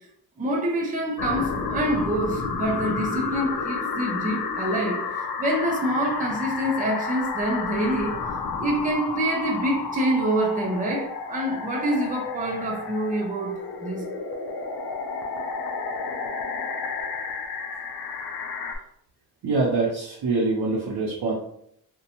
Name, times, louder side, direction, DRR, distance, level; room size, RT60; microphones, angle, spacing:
voice 1, 0.4-8.2 8.6-14.0, right 1 dB, 20° right, 0.4 m, -26 dB
sound 1, 1.2-18.8, left 4 dB, 70° left, 0.5 m, -31 dB
voice 2, 19.4-21.3, right 3 dB, 75° right, 0.6 m, -24 dB
2.5 x 2.2 x 2.7 m
wide cardioid pair, 165°, 39 cm